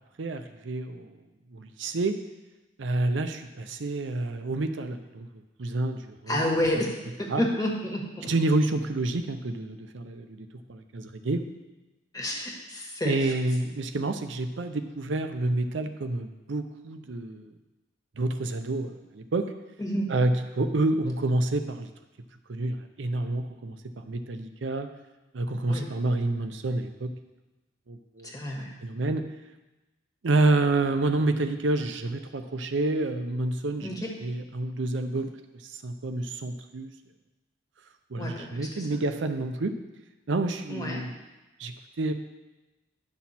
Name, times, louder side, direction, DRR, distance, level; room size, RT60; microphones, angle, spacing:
voice 1, 0.2-1.1 1.5-2.2 2.8-5.3 5.6-6.4 7.3-7.4 8.2-11.4 13.0-17.5 18.2-19.5 20.1-21.9 22.5-23.8 24.0-24.9 25.3-27.1 27.9-28.3 28.8-29.2 30.2-35.3 35.6-36.9 38.1-39.7 40.3-41.1 41.6-42.1, right 2 dB, 70° right, 7 dB, 0.6 m, -28 dB
voice 2, 6.3-6.9 7.2-8.3 12.1-13.3 19.8-20.1 25.7-25.9 28.2-28.7 33.8-34.1 38.2-39.0 40.7-41.0, left 1 dB, 20° left, 0 dB, 1.5 m, -30 dB
10.5 x 6.1 x 4.2 m, 1.1 s
head